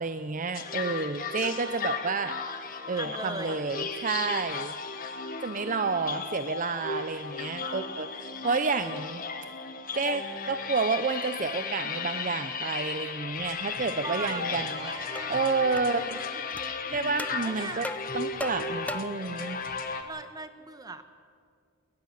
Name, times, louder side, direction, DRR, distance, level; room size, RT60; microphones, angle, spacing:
voice 1, 0.0-2.4 2.9-4.7 5.4-9.2 10.0-14.9 15.3-16.2 16.9-17.9 18.1-19.6, right 4 dB, 40° right, 10 dB, 0.6 m, -30 dB
sound 1, 0.5-20.0, left 5 dB, 45° left, 1.4 m, -35 dB
voice 2, 1.4-1.9 2.9-3.6 5.6-6.4 13.9-15.4 15.9-16.5 17.4-17.9 20.0-21.0, right 3 dB, 20° right, 9 dB, 1.0 m, -41 dB
sound 2, 14.5-14.6 15.2-15.3 15.8-15.9 16.6-16.7 17.2-17.4 17.8-19.3, left 1 dB, 5° left, 0.5 m, -37 dB
21.5 x 19.5 x 6.5 m, 2.1 s
head